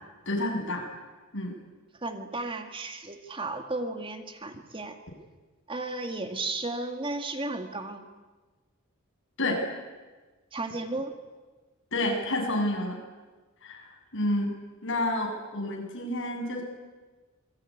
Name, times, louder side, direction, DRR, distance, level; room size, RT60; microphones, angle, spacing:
voice 1, 0.3-0.8 1.3-1.6 9.4-9.6 11.9-13.0 13.6-14.5 14.8-16.6, left 1 dB, 60° left, 2 dB, 7.5 m, -29 dB
voice 2, 2.0-5.0 5.7-8.0 10.5-11.1, right 2 dB, 25° right, 6 dB, 1.9 m, -34 dB
27.5 x 22.0 x 9.9 m, 1.3 s
head